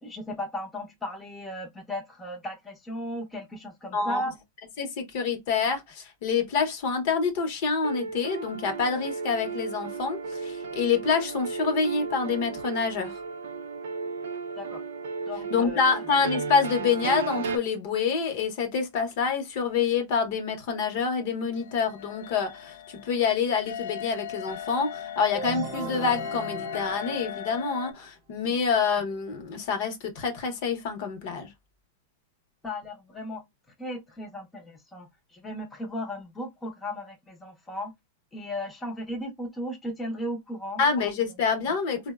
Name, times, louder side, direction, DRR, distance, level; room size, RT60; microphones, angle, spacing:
voice 1, 0.0-4.4 14.6-14.8 15.3-15.8 32.6-33.4 33.8-37.9 38.3-40.8, left 1 dB, 10° left, 0.6 m, -36 dB
voice 2, 4.8-13.2 15.5-31.5 40.8-42.1, left 5 dB, 50° left, 0.7 m, -27 dB
sound 1, 7.8-17.6, right 5 dB, 80° right, 0.5 m, -34 dB
sound 2, 21.5-27.9, left 9 dB, 80° left, 0.4 m, -38 dB
sound 3, 25.3-28.0, right 4 dB, 25° right, 1.0 m, -38 dB
3.8 x 2.0 x 2.3 m
supercardioid pair, 150°, 0 cm